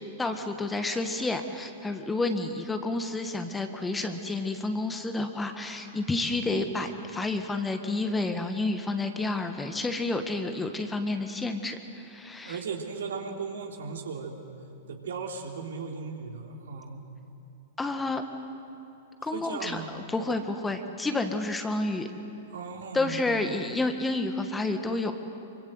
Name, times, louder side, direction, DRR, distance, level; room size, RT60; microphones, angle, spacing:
voice 1, 0.2-12.6 17.8-18.2 19.2-22.1 22.9-25.1, left 2 dB, 10° left, 7 dB, 1.7 m, -30 dB
voice 2, 12.4-14.3 14.9-17.0 19.2-19.9 22.5-23.5, right 5 dB, 65° right, 2 dB, 3.4 m, -37 dB
26.5 x 24.5 x 7.9 m, 2.8 s
figure-of-eight pair, 100°, 0 cm